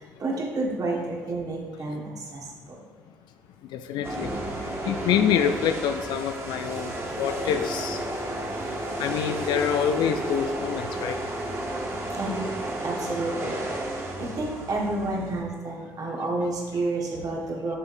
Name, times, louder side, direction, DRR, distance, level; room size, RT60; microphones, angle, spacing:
voice 1, 0.0-2.8 12.1-12.4 12.8-13.6 14.2-17.8, right 2 dB, 50° right, -2 dB, 1.6 m, -30 dB
voice 2, 3.7-8.0 9.0-11.2, left 8 dB, 70° left, 8 dB, 0.4 m, -26 dB
sound 1, 4.0-15.4, right 1 dB, 30° right, 1.4 m, -32 dB
6.8 x 5.2 x 2.6 m, 1.4 s
hypercardioid pair, 55°, 8 cm